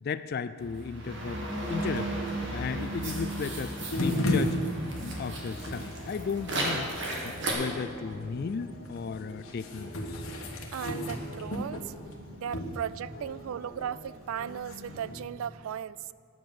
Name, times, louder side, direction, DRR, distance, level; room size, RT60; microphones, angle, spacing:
voice 1, 0.0-1.4 1.7-2.1 2.5-4.6 5.0-6.9 7.2-10.2, left 5 dB, 45° left, 13 dB, 0.3 m, -35 dB
sound 1, 0.6-7.5, right 1 dB, 55° right, 1.8 m, -35 dB
sound 2, 3.9-15.2, left 1 dB, 70° left, 1.4 m, -36 dB
voice 2, 10.7-11.9 12.3-16.1, right 9 dB, 75° right, 19 dB, 0.3 m, -36 dB
9.6 x 7.7 x 7.1 m, 2.2 s
head